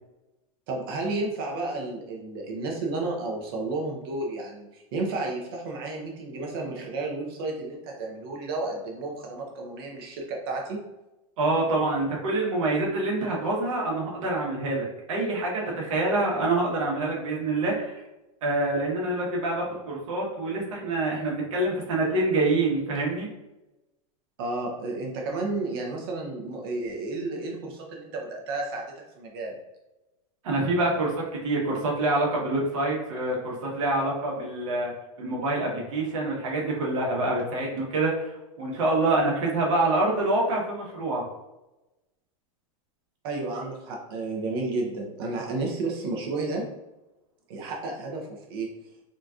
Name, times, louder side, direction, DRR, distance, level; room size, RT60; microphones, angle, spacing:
voice 1, 0.7-10.8 24.4-28.9 29.2-29.6 43.2-46.7 47.5-48.7, right 2 dB, 40° right, 0 dB, 0.5 m, -32 dB
voice 2, 11.4-18.0 18.4-23.3 30.4-34.9 35.2-41.2, right 2 dB, 65° right, -2 dB, 1.0 m, -26 dB
3.8 x 2.3 x 2.3 m, 0.99 s
supercardioid pair, 175°, 18 cm